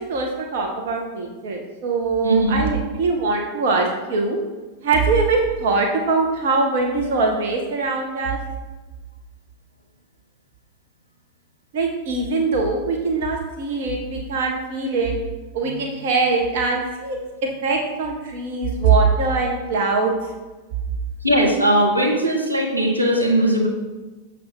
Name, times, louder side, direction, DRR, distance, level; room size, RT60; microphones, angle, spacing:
voice 1, 0.0-4.4 4.8-8.4 11.7-15.1 15.5-17.2 17.4-20.1, right 4 dB, 55° right, 1 dB, 0.8 m, -22 dB
voice 2, 2.2-2.6 15.6-15.9 21.2-23.7, right 1 dB, 85° right, -1 dB, 1.0 m, -19 dB
7.0 x 3.3 x 5.2 m, 1.2 s
figure-of-eight pair, 90°, 0 cm